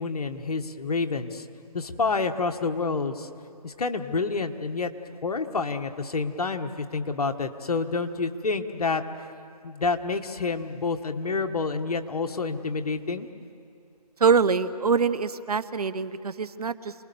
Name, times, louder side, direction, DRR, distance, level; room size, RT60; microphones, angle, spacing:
voice 1, 0.0-1.4 1.7-3.3 3.6-4.9 5.2-9.0 9.6-13.3, left 4 dB, 65° left, 6 dB, 1.6 m, -28 dB
voice 2, 14.2-16.9, right 5 dB, 65° right, 14 dB, 1.0 m, -24 dB
27.5 x 20.5 x 7.0 m, 2.6 s
figure-of-eight pair, 155°, 21 cm